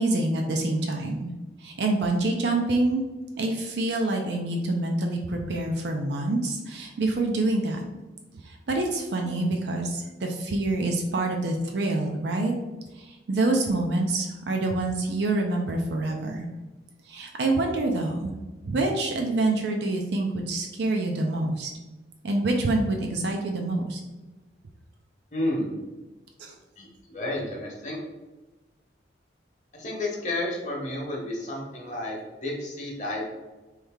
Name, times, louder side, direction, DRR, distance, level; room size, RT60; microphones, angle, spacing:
voice 1, 0.0-1.3 1.6-3.0 3.4-7.8 8.4-12.5 12.9-16.5 17.0-18.3 18.6-21.7 22.2-24.0 26.4-26.6, right 2 dB, 70° right, 2 dB, 0.4 m, -26 dB
voice 2, 25.3-25.7 26.8-28.0 29.7-33.2, left 1 dB, 40° left, -2 dB, 0.9 m, -31 dB
3.2 x 2.7 x 3.5 m, 1.1 s
head